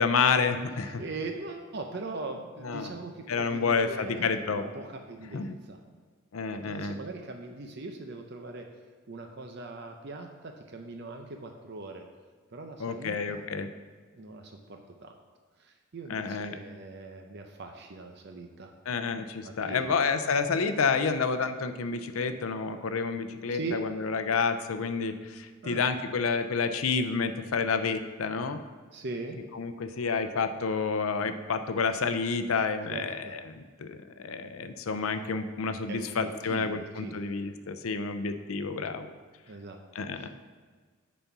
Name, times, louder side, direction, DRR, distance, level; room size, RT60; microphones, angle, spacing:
voice 1, 0.0-1.0 2.6-2.9 3.3-4.6 5.3-5.6 6.3-7.0 12.8-13.7 16.1-16.6 18.9-28.6 29.5-39.1 40.0-40.3, left 5 dB, 85° left, 9 dB, 0.6 m, -29 dB
voice 2, 0.8-5.8 6.5-8.7 9.1-12.0 12.5-13.4 14.1-15.1 15.6-18.7 19.4-20.0 20.2-20.6 23.5-23.8 25.6-25.8 28.9-29.4 32.9-33.4 35.9-37.2 39.5-40.3, right 3 dB, 50° right, 4 dB, 0.6 m, -41 dB
8.9 x 4.2 x 6.0 m, 1.5 s
head